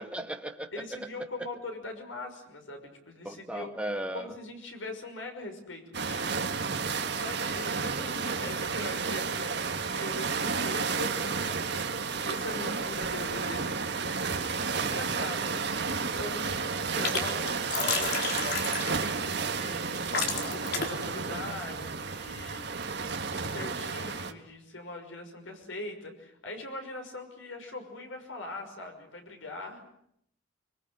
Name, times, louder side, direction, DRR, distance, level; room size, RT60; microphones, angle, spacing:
voice 1, 0.0-0.7 1.0-1.1 3.2-4.3 12.6-12.7, right 1 dB, 5° right, 4 dB, 1.9 m, -36 dB
voice 2, 0.7-3.8 4.1-6.4 7.1-11.9 12.2-18.4 19.1-22.9 23.3-29.8, left 2 dB, 90° left, 4 dB, 6.0 m, -42 dB
sound 1, 5.9-24.3, right 5 dB, 60° right, 1.7 m, -32 dB
sound 2, 15.6-16.1 16.4-17.2 17.5-19.1 19.8-19.9 20.1-21.0, left 4 dB, 55° left, 4.2 m, -31 dB
25.0 x 23.0 x 8.0 m, 0.72 s
head